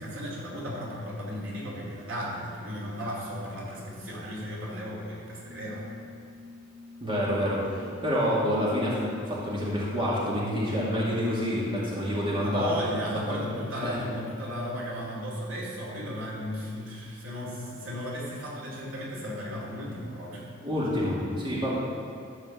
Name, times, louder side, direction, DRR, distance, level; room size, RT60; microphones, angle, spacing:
voice 1, 0.0-5.9 12.4-20.5, equal, 80° right, -4 dB, 2.8 m, -35 dB
Organ, 5.3-15.5, left 3 dB, 10° left, 2.8 m, -48 dB
voice 2, 7.0-9.0 9.3-12.7 13.8-14.0 20.6-21.7, equal, 25° right, -7 dB, 2.2 m, -27 dB
13.0 x 4.9 x 7.3 m, 2.3 s
head